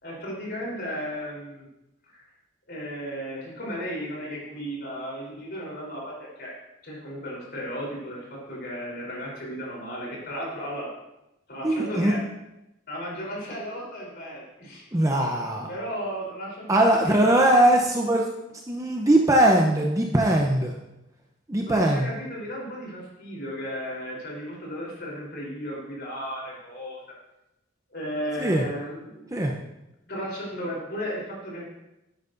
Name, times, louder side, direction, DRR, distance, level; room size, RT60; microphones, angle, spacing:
voice 1, 0.0-1.7 2.1-2.3 2.7-6.5 6.8-10.9 11.5-12.2 12.9-14.8 15.2-15.3 15.7-17.8 21.7-27.0 27.9-29.3 30.1-31.6, equal, 55° left, -3 dB, 3.7 m, -35 dB
voice 2, 11.6-12.1 14.9-15.7 16.7-18.3 18.7-20.7 21.5-22.1 28.4-28.6 29.3-29.5, right 1 dB, 15° right, 0 dB, 0.7 m, -20 dB
11.0 x 9.4 x 2.6 m, 0.91 s
head